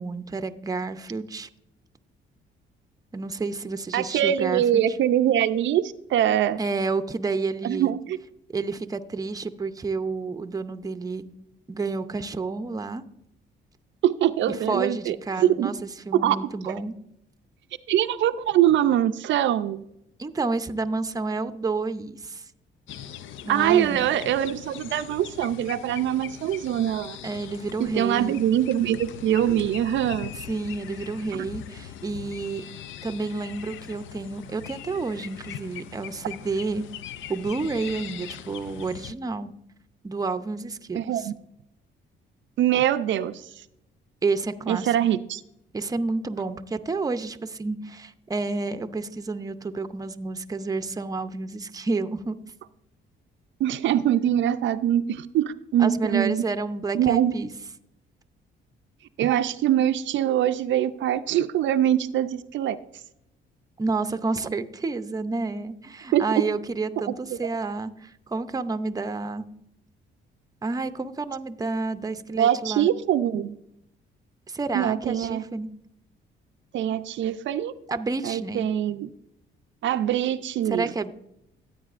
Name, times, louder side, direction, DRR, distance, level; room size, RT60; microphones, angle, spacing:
voice 1, 0.0-1.5 3.1-4.8 6.6-7.9 8.5-11.3 11.7-13.0 14.7-16.9 20.2-22.4 23.5-24.1 27.2-28.4 30.4-32.6 33.0-36.9 37.3-39.5 40.0-41.3 44.2-44.9 45.7-52.4 55.8-57.5 63.8-69.5 70.6-72.9 74.5-75.7 77.9-78.7 80.7-81.1, right 3 dB, 20° right, 9 dB, 0.6 m, -30 dB
voice 2, 3.9-6.6 7.6-8.2 14.0-15.7 16.1-16.8 17.9-19.8 23.5-27.2 27.8-30.3 31.4-31.5 40.9-41.3 42.6-43.5 44.7-45.4 53.6-56.4 56.9-57.3 59.2-62.8 66.1-66.3 67.3-67.4 72.4-73.6 74.7-75.4 76.7-77.7 78.2-79.1 79.8-80.9, right 11 dB, 70° right, 10 dB, 0.5 m, -23 dB
sound 1, 22.9-39.1, left 10 dB, 75° left, 0.5 m, -41 dB
14.5 x 8.7 x 2.5 m, 0.80 s
cardioid pair, 90°, 20 cm